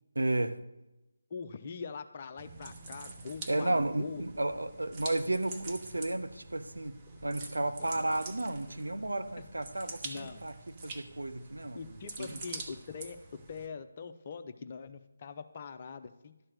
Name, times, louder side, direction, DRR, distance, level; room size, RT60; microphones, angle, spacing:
voice 1, 0.2-0.6 3.5-6.9 7.2-10.5 10.8-12.4, right 2 dB, 70° right, 8 dB, 0.8 m, -33 dB
voice 2, 1.3-4.2 10.0-10.4 11.7-13.2 13.5-16.3, left 5 dB, 30° left, 8 dB, 0.6 m, -43 dB
sound 1, 2.3-2.6 3.1-3.2 3.5-4.5 5.1-5.8 6.1-6.2 6.7-6.8 7.1-8.9 9.4-9.5, right 1 dB, ahead, 1.5 m, -50 dB
sound 2, 2.4-13.7, right 3 dB, 20° right, 0.8 m, -46 dB
12.0 x 4.3 x 6.5 m, 0.95 s
figure-of-eight pair, 155°, 0 cm